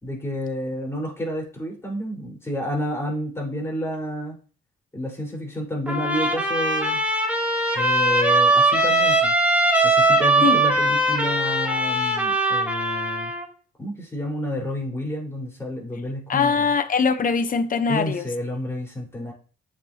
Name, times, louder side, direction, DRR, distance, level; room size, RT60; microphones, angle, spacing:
voice 1, 0.0-4.4 4.9-7.0 7.7-9.3 9.8-13.3 13.8-16.7 17.9-19.3, left 1 dB, 15° left, 4.8 m, -30 dB
Trumpet, 5.9-13.4, right 2 dB, 5° right, 2.4 m, -20 dB
voice 2, 16.3-18.3, left 5 dB, 45° left, 0.9 m, -22 dB
8.9 x 6.5 x 2.9 m
cardioid pair, 90°, 20 cm